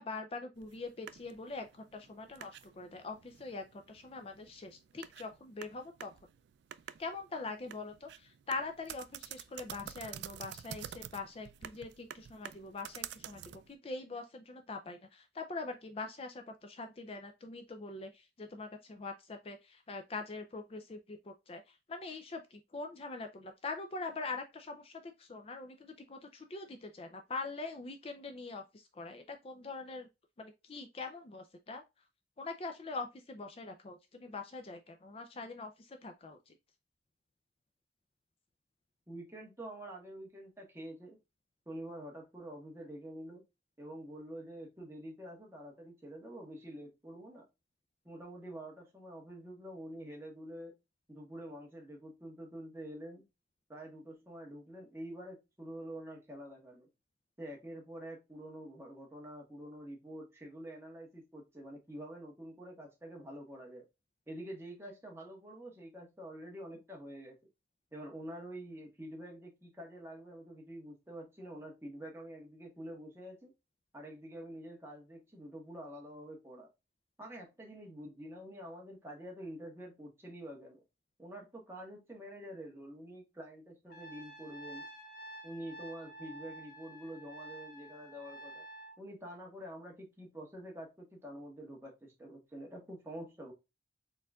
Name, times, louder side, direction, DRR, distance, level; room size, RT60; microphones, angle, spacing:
voice 1, 0.0-6.1 7.0-30.1 30.4-31.8 32.4-36.6, left 3 dB, 35° left, 0.4 m, -43 dB
sound 1, 0.6-13.7, right 10 dB, 70° right, 0.3 m, -49 dB
voice 2, 39.1-41.2 41.7-43.4 43.8-47.4 48.0-50.7 51.1-53.2 53.7-56.9 57.4-63.8 64.3-67.4 67.9-73.5 73.9-76.7 77.2-80.8 81.2-84.8 85.4-88.6 89.0-93.5, right 1 dB, 15° right, 1.4 m, -47 dB
Trumpet, 83.9-89.0, right 1 dB, 55° left, 0.8 m, -50 dB
4.3 x 3.9 x 2.3 m
head